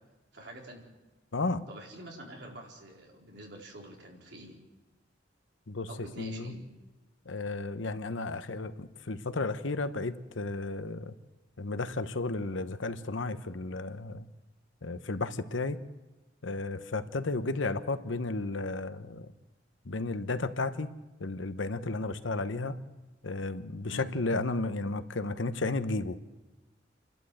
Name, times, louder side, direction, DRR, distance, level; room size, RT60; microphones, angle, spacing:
voice 1, 0.3-0.8 1.7-4.6 5.9-6.6 23.9-24.1, right 1 dB, 60° right, -1 dB, 4.4 m, -46 dB
voice 2, 1.3-1.6 5.7-5.9 6.2-6.5 7.3-11.2 11.6-14.2 14.8-15.8 16.4-19.3 19.8-20.9 21.2-22.8 23.2-26.2, left 3 dB, 85° left, 11 dB, 1.0 m, -33 dB
29.0 x 12.0 x 7.9 m, 1.1 s
head